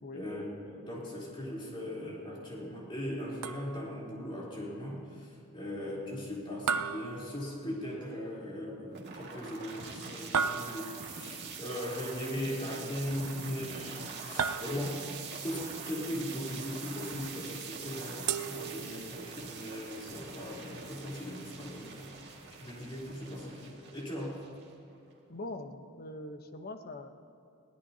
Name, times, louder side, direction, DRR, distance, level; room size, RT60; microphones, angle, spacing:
voice 1, 0.1-15.0 15.3-22.2 22.5-24.4, equal, 25° left, -5 dB, 3.6 m, -39 dB
sound 1, 3.4-4.0 6.7-7.9 10.3-11.2 14.4-15.2 18.3-19.3, right 6 dB, 85° right, 0.6 m, -35 dB
sound 2, 8.9-24.9, right 5 dB, 50° right, 2.1 m, -44 dB
voice 2, 14.6-15.0 25.3-27.1, left 2 dB, 45° left, 6 dB, 1.0 m, -42 dB
21.5 x 16.5 x 2.8 m, 2.8 s
head